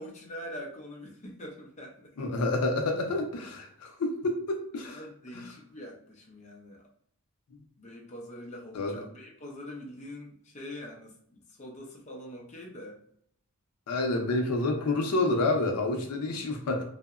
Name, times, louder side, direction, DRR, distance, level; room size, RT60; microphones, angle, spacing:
voice 1, 0.0-2.1 4.8-6.9 7.8-13.0, left 1 dB, 30° left, -1 dB, 0.4 m, -44 dB
voice 2, 2.2-5.0 5.3-5.4 8.7-9.0 13.9-16.8, left 2 dB, 85° left, 3 dB, 0.5 m, -28 dB
2.7 x 2.0 x 2.3 m, 0.66 s
head